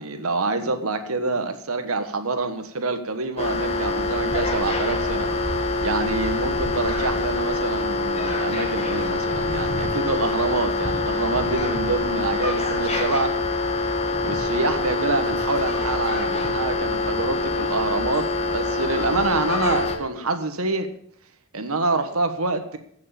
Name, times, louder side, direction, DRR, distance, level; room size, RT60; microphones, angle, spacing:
voice 1, 0.0-5.6 5.8-13.3 14.2-20.9 21.5-22.8, right 3 dB, 75° right, 8 dB, 1.4 m, -26 dB
sound 1, 3.4-20.0, left 2 dB, 30° left, 1.9 m, -25 dB
16.0 x 6.6 x 7.0 m, 0.69 s
head